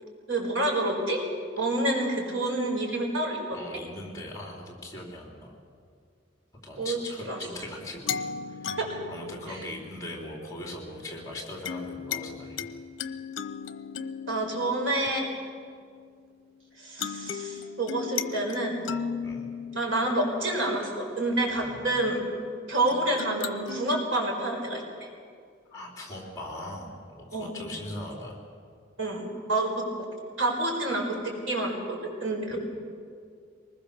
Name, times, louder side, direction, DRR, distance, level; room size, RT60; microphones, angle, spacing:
voice 1, 0.3-1.2 1.5-3.7 6.8-7.0 7.3-7.4 8.8-9.0 9.5-9.6 14.2-15.3 16.8-18.8 19.7-22.2 22.7-25.1 27.3-27.6 29.0-29.7 30.4-32.6, right 2 dB, 90° right, 0 dB, 5.1 m, -28 dB
voice 2, 3.5-5.5 6.6-8.2 8.5-8.8 9.1-12.7 19.2-19.5 21.5-22.0 25.7-28.4 32.5-32.6, left 1 dB, 15° left, -1 dB, 3.8 m, -40 dB
sound 1, 8.0-10.3 11.6-16.4 17.0-21.1 22.9-24.0, left 6 dB, 75° left, 0.8 m, -37 dB
23.5 x 20.5 x 6.9 m, 2.2 s
head